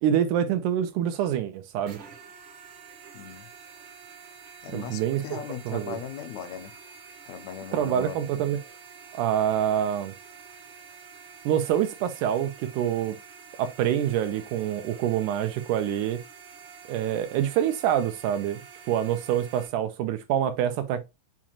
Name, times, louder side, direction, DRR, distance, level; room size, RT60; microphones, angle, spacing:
voice 1, 0.0-2.0 4.7-5.4 5.7-6.0 7.7-8.6 9.1-10.1 11.5-13.2 13.6-16.2 16.9-21.0, right 10 dB, 85° right, 2.1 m, -26 dB
sound 1, 1.8-19.7, right 6 dB, 65° right, 1.4 m, -48 dB
voice 2, 3.1-3.5 4.6-6.7 7.3-8.3, left 9 dB, 80° left, 1.7 m, -38 dB
7.2 x 2.5 x 2.9 m
omnidirectional pair, 3.7 m